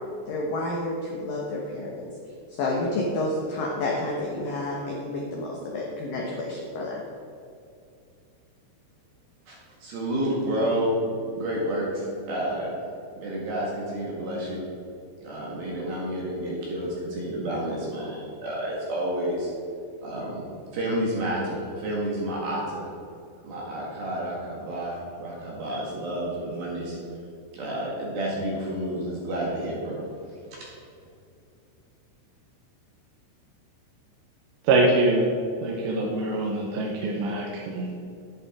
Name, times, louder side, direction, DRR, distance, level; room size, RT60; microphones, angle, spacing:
voice 1, 0.3-2.1 2.5-7.0, left 2 dB, 75° left, -3 dB, 2.1 m, -30 dB
voice 2, 9.8-12.7 13.2-14.7 15.2-19.5 20.0-20.5 20.7-22.9 23.4-27.0 27.5-30.0 30.5-30.7, right 1 dB, 60° right, -4 dB, 3.1 m, -30 dB
voice 3, 34.7-35.3 35.6-37.9, right 2 dB, 85° right, -2 dB, 3.5 m, -24 dB
11.0 x 10.5 x 3.6 m, 2.5 s
omnidirectional pair, 5.6 m